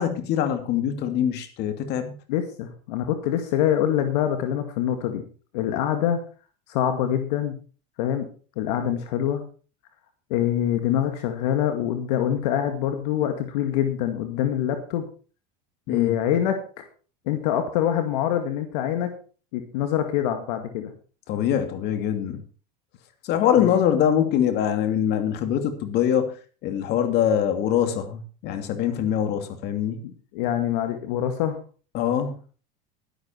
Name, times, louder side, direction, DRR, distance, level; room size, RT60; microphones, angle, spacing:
voice 1, 0.0-2.1 15.9-16.1 21.3-22.4 23.2-26.3 26.6-30.0 31.9-32.4, left 9 dB, 55° left, 7 dB, 2.6 m, -23 dB
voice 2, 2.3-5.2 5.5-6.2 6.7-7.6 8.0-8.3 8.6-9.4 10.3-15.0 15.9-16.6 17.3-19.1 19.5-20.9 23.6-23.7 30.0-31.6, left 10 dB, 75° left, 6 dB, 2.0 m, -25 dB
12.0 x 11.5 x 4.5 m, 0.38 s
supercardioid pair, 105°, 21 cm